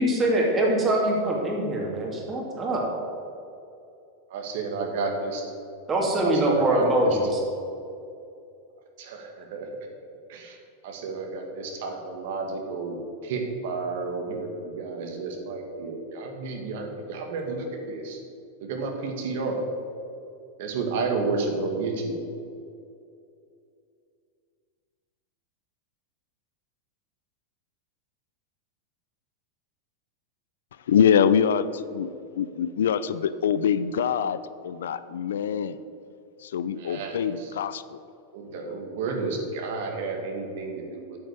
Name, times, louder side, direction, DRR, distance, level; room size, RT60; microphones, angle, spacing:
voice 1, 0.0-2.9 5.9-7.4, right 1 dB, 25° right, -1 dB, 2.6 m, -23 dB
voice 2, 4.3-5.4 6.2-7.1 9.0-9.7 10.3-10.6 10.8-13.0 13.2-18.2 18.6-19.6 20.6-22.2 36.8-37.5 38.3-41.2, right 4 dB, 65° right, 3 dB, 1.8 m, -31 dB
voice 3, 30.9-35.8 36.4-38.0 38.5-38.8, left 8 dB, 85° left, 15 dB, 0.4 m, -25 dB
8.9 x 5.4 x 8.0 m, 2.5 s
hypercardioid pair, 120°, 0 cm